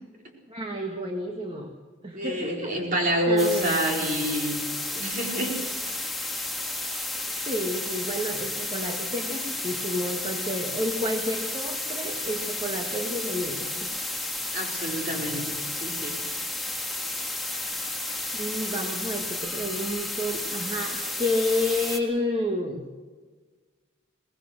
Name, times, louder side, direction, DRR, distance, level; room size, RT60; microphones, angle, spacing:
voice 1, 0.5-1.7 2.0-2.7 3.3-4.1 7.5-13.9 18.3-22.9, left 1 dB, 25° right, 2 dB, 1.6 m, -30 dB
voice 2, 2.1-4.6 4.9-5.7 14.5-15.5 15.8-16.2, equal, 40° right, 0 dB, 4.4 m, -27 dB
sound 1, 3.4-22.0, left 2 dB, ahead, 1.8 m, -32 dB
23.0 x 19.0 x 6.5 m, 1.4 s
head